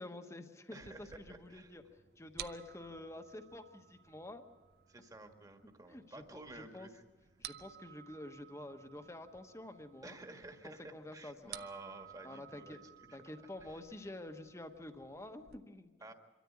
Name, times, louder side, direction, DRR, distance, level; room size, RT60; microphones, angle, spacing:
voice 1, 0.0-1.8 2.2-4.4 5.9-6.9 7.4-10.2 10.6-11.5 12.2-12.8 13.1-15.9, left 1 dB, 15° left, 7 dB, 1.2 m, -48 dB
voice 2, 0.7-1.7 4.9-7.0 10.0-13.3 13.6-13.8 16.0-16.1, right 2 dB, 20° right, 5 dB, 1.7 m, -52 dB
sound 1, 0.8-15.6, right 10 dB, 60° right, 0.7 m, -55 dB
24.5 x 13.5 x 8.5 m, 1.2 s
head